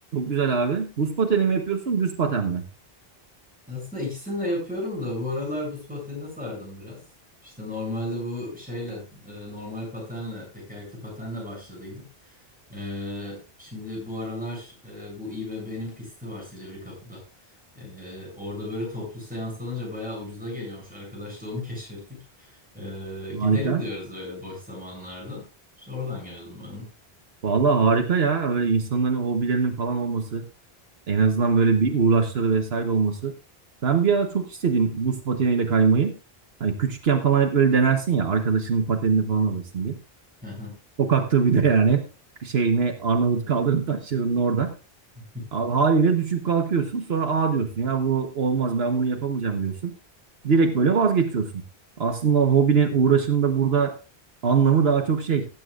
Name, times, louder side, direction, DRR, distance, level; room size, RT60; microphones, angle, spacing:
voice 1, 0.1-2.6 23.3-23.8 27.4-30.4 31.1-33.3 33.8-36.1 36.6-40.0 41.0-42.1 42.4-44.7 45.5-49.9 50.4-51.6 52.0-54.0 54.4-55.5, right 5 dB, 75° right, 5 dB, 1.4 m, -22 dB
voice 2, 3.7-7.0 7.4-12.3 12.7-17.2 17.8-25.4 25.8-26.9 40.4-40.8 45.2-45.5, left 1 dB, 10° right, -4 dB, 7.9 m, -34 dB
19.0 x 9.1 x 2.5 m, 0.31 s
omnidirectional pair, 1.0 m